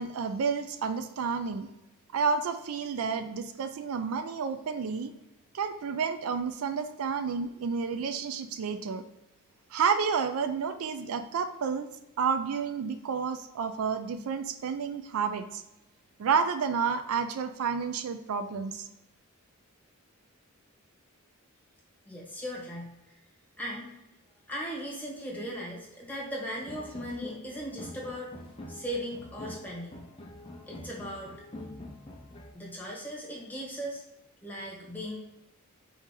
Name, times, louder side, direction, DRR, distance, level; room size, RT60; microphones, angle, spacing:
voice 1, 0.0-1.7 2.1-5.1 5.5-9.0 9.7-11.9 12.2-15.6 16.2-18.9, right 6 dB, 85° right, 9 dB, 0.4 m, -30 dB
voice 2, 22.0-22.9 23.6-23.9 24.5-28.3 28.7-30.0 30.7-31.3 32.5-34.0 34.4-35.2, equal, 10° left, -4 dB, 1.2 m, -38 dB
sound 1, 26.6-32.5, left 1 dB, 25° left, 0.6 m, -45 dB
4.5 x 2.8 x 3.7 m, 0.94 s
head